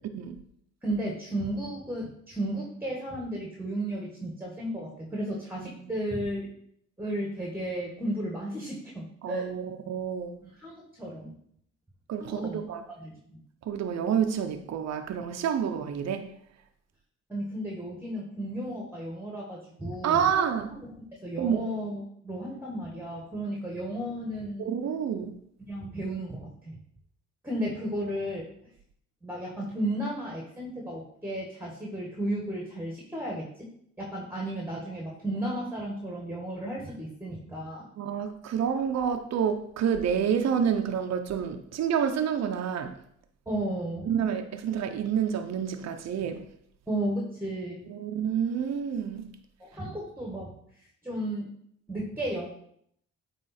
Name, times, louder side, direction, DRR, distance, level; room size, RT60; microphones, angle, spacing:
voice 1, 0.8-6.5 7.0-9.5 10.4-11.3 12.2-13.4 17.3-20.3 20.7-24.7 25.7-26.8 27.4-28.5 29.2-33.7 34.0-37.9 43.4-44.1 46.9-47.9 49.6-50.5 51.0-51.5 51.9-52.5, right 1 dB, 5° right, -1 dB, 1.6 m, -34 dB
voice 2, 9.2-10.4 12.1-12.8 13.7-16.3 20.0-20.7 21.4-21.7 24.6-25.3 38.0-42.9 44.1-46.4 47.9-49.3, right 8 dB, 60° right, 6 dB, 0.8 m, -28 dB
8.8 x 3.3 x 4.2 m, 0.68 s
cardioid pair, 90°, 30 cm